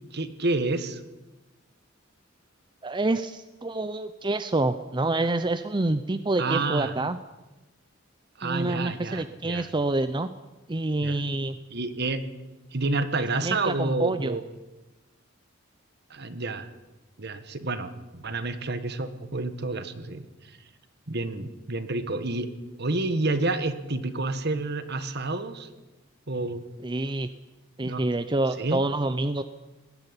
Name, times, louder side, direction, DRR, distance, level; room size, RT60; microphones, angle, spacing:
voice 1, 0.1-1.0 6.4-6.9 8.4-9.7 11.0-11.2 11.7-12.2 12.7-14.4 16.1-16.7 17.2-17.9 18.2-20.3 21.1-22.5 22.8-25.7 26.3-26.6 27.8-28.0 28.6-28.8, right 2 dB, 55° right, 11 dB, 1.7 m, -29 dB
voice 2, 2.8-7.2 8.4-10.3 10.7-11.6 13.4-14.4 26.8-27.3 27.8-29.4, right 2 dB, 25° right, 10 dB, 0.7 m, -27 dB
20.0 x 15.0 x 9.9 m, 1.1 s
head